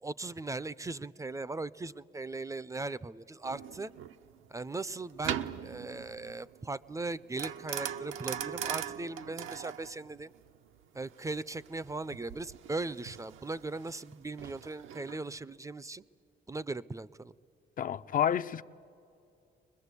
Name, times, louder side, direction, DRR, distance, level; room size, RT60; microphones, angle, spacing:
voice 1, 0.0-3.9 4.5-10.3 10.9-16.0 16.5-17.3, right 3 dB, 15° right, 0.5 m, -38 dB
sound 1, 3.4-15.4, right 9 dB, 85° right, 0.8 m, -41 dB
voice 2, 17.8-18.6, left 9 dB, 45° left, 0.5 m, -29 dB
23.0 x 21.0 x 8.2 m
cardioid pair, 90°, 20 cm